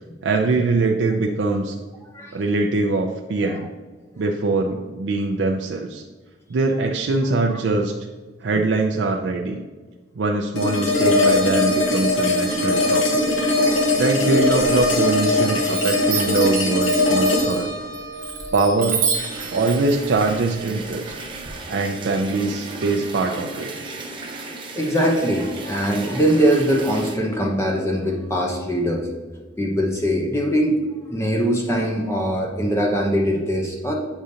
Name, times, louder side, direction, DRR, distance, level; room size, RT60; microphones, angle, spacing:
voice 1, 0.2-1.8 2.3-3.7 4.2-6.0 6.5-7.9 8.4-9.6 10.2-13.2 13.7-17.7 18.5-19.0 19.5-21.1 21.7-23.7, right 3 dB, 70° right, 2 dB, 0.4 m, -22 dB
sound 1, 10.6-19.6, left 2 dB, 80° left, 1.1 m, -20 dB
Chime, 14.6-15.3 15.6-21.5, right 6 dB, 45° right, 1.0 m, -30 dB
sound 2, 19.1-27.1, right 3 dB, 25° right, 0.8 m, -35 dB
voice 2, 24.7-29.1 29.6-30.8 31.1-33.9, equal, 15° left, 0 dB, 0.7 m, -22 dB
8.0 x 5.0 x 2.7 m, 1.4 s
head